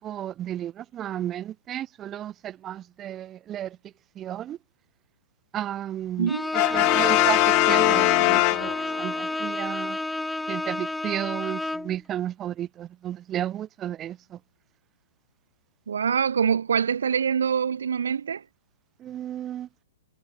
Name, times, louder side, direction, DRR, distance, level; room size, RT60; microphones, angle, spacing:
voice 1, 0.0-4.6 5.5-6.3 6.7-10.0 10.5-14.4 19.0-19.7, right 11 dB, 15° right, 4.3 m, -33 dB
voice 2, 6.2-6.5 15.9-18.4, right 7 dB, 90° right, 2.6 m, -24 dB
Bowed string instrument, 6.3-12.0, left 2 dB, 5° left, 1.1 m, -30 dB
Brass instrument, 6.5-9.2, left 40 dB or more, 30° left, 0.4 m, -21 dB
hypercardioid pair, 160°, 0 cm